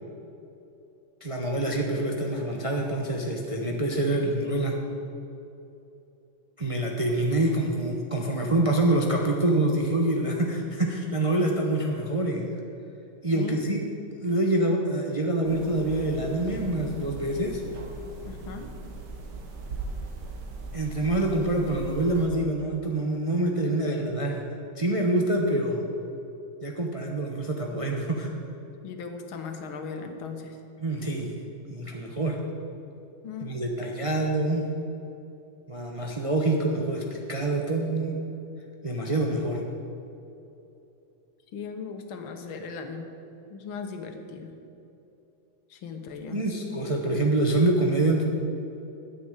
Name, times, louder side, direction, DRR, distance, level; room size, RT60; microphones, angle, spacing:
voice 1, 1.2-4.8 6.6-12.4 13.2-13.8 14.2-17.6 20.7-24.4 24.8-25.8 26.6-28.3 30.8-31.3 31.7-32.4 33.4-34.6 35.7-38.2 38.8-39.6 46.3-48.2, right 2 dB, 40° right, 0 dB, 0.5 m, -26 dB
sound 1, 15.4-22.3, right 3 dB, 55° right, 1.7 m, -39 dB
voice 2, 18.3-18.7 28.8-30.6 33.2-33.6 41.5-43.1 43.5-44.5 45.7-46.4, left 5 dB, 75° left, 5 dB, 1.9 m, -38 dB
9.7 x 6.9 x 8.9 m, 2.9 s
omnidirectional pair, 2.3 m